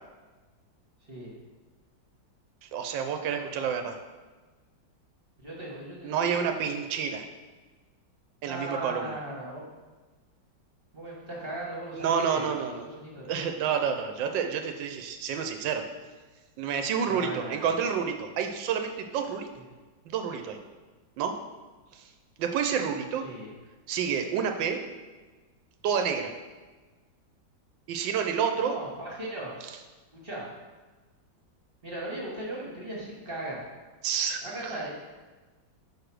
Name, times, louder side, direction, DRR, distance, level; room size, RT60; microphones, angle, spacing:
voice 1, 2.6-4.0 6.0-7.2 8.4-9.2 11.9-12.9 13.3-15.8 16.6-19.5 20.1-20.6 21.2-21.3 21.9-22.1 22.4-23.2 23.9-24.8 25.8-26.3 27.9-28.8 34.0-34.8, right 7 dB, 90° right, 5 dB, 1.3 m, -29 dB
voice 2, 5.4-6.2 8.4-9.7 10.9-12.5 12.8-13.2 17.0-17.7 19.5-19.6 23.2-23.5 28.6-29.5 30.1-30.5 31.8-33.6 34.4-34.9, right 1 dB, 30° right, -4 dB, 1.7 m, -37 dB
5.0 x 4.9 x 6.1 m, 1.3 s
omnidirectional pair, 2.0 m